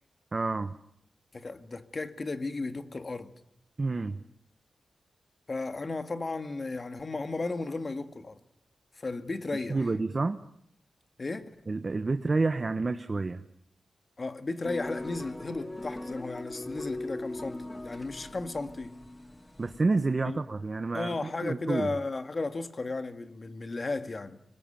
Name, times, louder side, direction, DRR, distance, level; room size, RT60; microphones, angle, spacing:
voice 1, 0.3-0.7 3.8-4.2 9.7-10.4 11.7-13.4 19.6-21.9, right 3 dB, 35° right, 1.1 m, -29 dB
voice 2, 1.3-3.3 5.5-8.4 9.0-9.9 11.2-11.6 14.2-19.0 20.2-20.4 20.9-24.4, left 3 dB, 35° left, 2.1 m, -34 dB
sound 1, 14.6-19.8, left 1 dB, 15° left, 2.1 m, -40 dB
25.5 x 23.0 x 9.1 m
wide cardioid pair, 95°, 0 cm